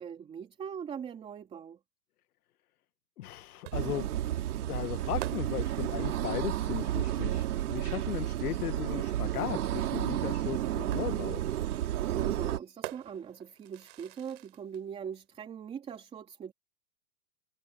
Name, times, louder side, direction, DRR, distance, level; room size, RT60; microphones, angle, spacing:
voice 1, 0.0-1.8 12.1-16.5, right 7 dB, 10° right, 3.0 m, -41 dB
voice 2, 3.2-4.1 4.6-11.4, left 12 dB, 65° left, 1.8 m, -37 dB
sound 1, 3.6-7.3 8.8-8.9 10.9-14.8, right 17 dB, 45° right, 4.8 m, -48 dB
sound 2, 3.7-12.6, right 12 dB, 65° right, 3.8 m, -32 dB
supercardioid pair, 170°, 48 cm